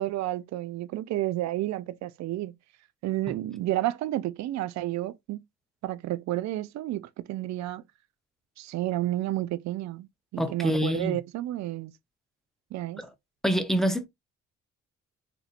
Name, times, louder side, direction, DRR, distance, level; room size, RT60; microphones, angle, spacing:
voice 1, 0.0-2.5 3.0-5.4 5.8-7.8 8.6-11.9 12.7-13.0, right 15 dB, 65° right, 0.4 m, -31 dB
voice 2, 10.4-11.2 13.0-13.1 13.4-14.1, equal, ahead, 0.7 m, -26 dB
4.3 x 2.7 x 2.4 m
cardioid pair, 90°, 30 cm